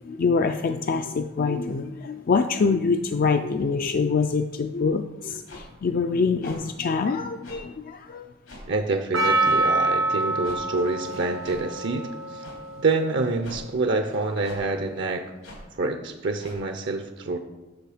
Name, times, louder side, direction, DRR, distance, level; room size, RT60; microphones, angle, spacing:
voice 1, 0.0-8.3, left 4 dB, 45° left, 7 dB, 0.3 m, -25 dB
sound 1, 5.5-5.6 6.4-6.6 7.4-7.6 8.5-8.7 9.4-9.6 10.4-10.6 11.4-11.6 12.4-12.6 13.4-13.6 14.4-14.6 15.4-15.6 16.4-16.6, left 1 dB, 90° left, 3.0 m, -42 dB
voice 2, 8.7-12.4 12.8-15.2 15.7-17.4, right 3 dB, 60° right, 6 dB, 0.6 m, -27 dB
Percussion, 9.1-13.5 14.1-14.2, right 2 dB, 85° right, 1.5 m, -26 dB
9.4 x 6.6 x 5.0 m, 1.1 s
head